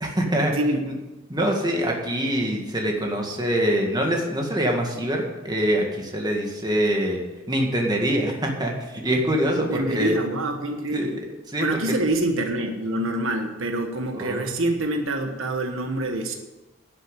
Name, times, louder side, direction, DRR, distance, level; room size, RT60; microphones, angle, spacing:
voice 1, 0.0-0.5 0.8-0.9 1.3-10.1 10.9-11.1 11.5-11.7 14.1-14.5, equal, 20° right, 0 dB, 2.0 m, -24 dB
voice 2, 9.5-11.1 11.6-16.4, right 1 dB, 70° right, 5 dB, 1.3 m, -26 dB
11.5 x 7.6 x 8.2 m, 1.1 s
head